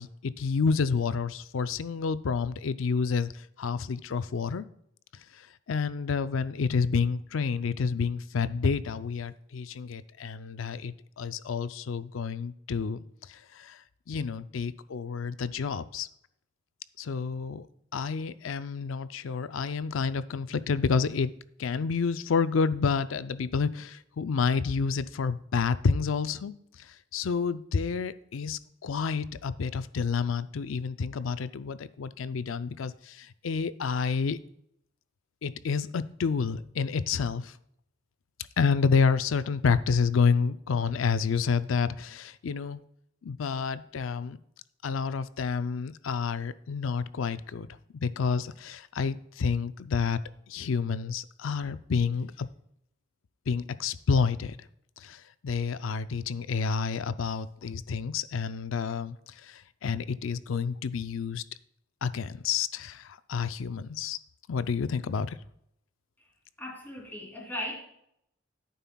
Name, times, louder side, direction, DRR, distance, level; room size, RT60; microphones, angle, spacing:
voice 1, 0.0-4.7 5.4-13.0 13.3-13.8 14.1-16.1 17.0-17.7 17.9-21.3 21.6-34.4 35.4-37.5 38.6-42.8 43.2-44.4 44.8-47.7 47.9-50.2 50.5-52.5 53.5-54.6 55.0-61.4 62.0-64.2 64.5-65.4, left 5 dB, 85° left, 14 dB, 0.5 m, -29 dB
voice 2, 66.6-67.8, left 1 dB, 10° left, -2 dB, 2.9 m, -37 dB
11.0 x 9.2 x 2.3 m, 0.74 s
head